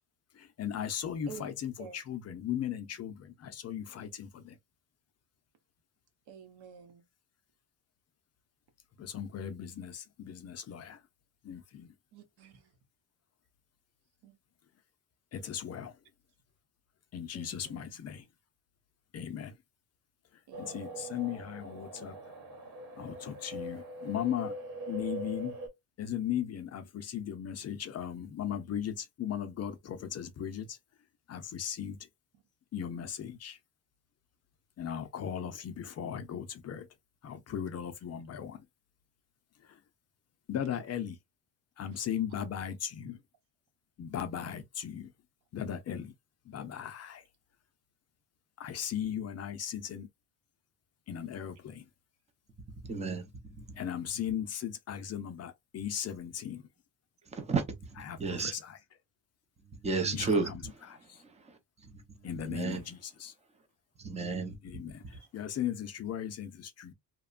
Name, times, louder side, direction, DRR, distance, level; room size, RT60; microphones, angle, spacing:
voice 1, 0.4-4.5 9.0-11.0 11.4-11.9 15.3-15.9 17.1-18.2 19.1-19.5 20.6-22.2 23.0-24.5 24.9-25.5 26.0-30.8 31.3-32.0 32.7-33.6 34.8-36.9 37.2-38.6 40.5-41.2 41.8-43.2 44.0-45.1 45.5-46.1 46.5-47.2 48.6-50.1 51.1-51.8 53.8-56.6 58.1-58.8 60.1-60.6 61.1-61.2 62.2-63.3 64.6-65.0 65.3-66.9, left 9 dB, 40° left, 0.4 m, -37 dB
voice 2, 1.3-2.0 6.3-7.0 12.1-12.7 14.2-14.4 17.3-17.9 20.5-21.1 41.9-42.0 65.1-65.2, right 7 dB, 80° right, 0.9 m, -50 dB
sound 1, 20.5-25.7, right 1 dB, 65° right, 1.2 m, -42 dB
voice 3, 52.8-53.2 53.6-53.8 57.3-57.8 58.2-58.5 59.8-60.5 61.8-62.0 62.5-62.8 64.0-64.6, right 4 dB, 15° right, 0.5 m, -32 dB
2.9 x 2.1 x 2.3 m
cardioid pair, 150°, 39 cm